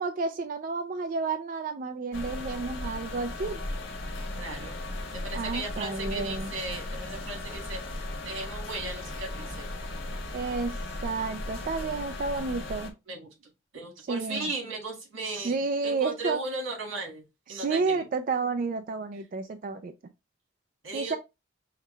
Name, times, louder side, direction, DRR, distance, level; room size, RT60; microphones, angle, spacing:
voice 1, 0.0-3.6 5.3-6.5 10.3-12.9 14.1-14.5 15.3-16.4 17.5-19.9 20.9-21.2, right 4 dB, 45° right, 0.3 m, -31 dB
sound 1, 2.1-12.9, left 2 dB, 60° left, 1.2 m, -36 dB
voice 2, 4.4-4.8 5.1-9.7 13.1-13.3 13.7-18.0 20.8-21.2, right 2 dB, 90° right, 1.7 m, -37 dB
5.6 x 2.2 x 3.1 m
head